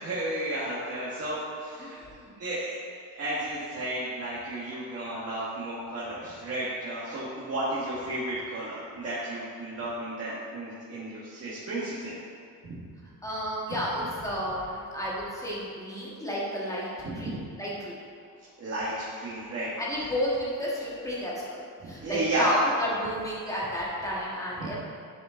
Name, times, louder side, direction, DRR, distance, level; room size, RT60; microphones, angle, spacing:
voice 1, 0.0-2.0 2.4-2.8 3.1-12.1 12.6-12.8 17.0-17.4 18.6-19.7 22.0-22.5 24.6-24.7, right 1 dB, 40° right, -9 dB, 1.5 m, -33 dB
voice 2, 1.8-2.3 13.2-16.9 17.1-17.3 17.6-18.0 19.8-24.7, equal, 10° left, -6 dB, 1.7 m, -31 dB
11.0 x 5.0 x 3.8 m, 2.2 s
cardioid pair, 160°, 38 cm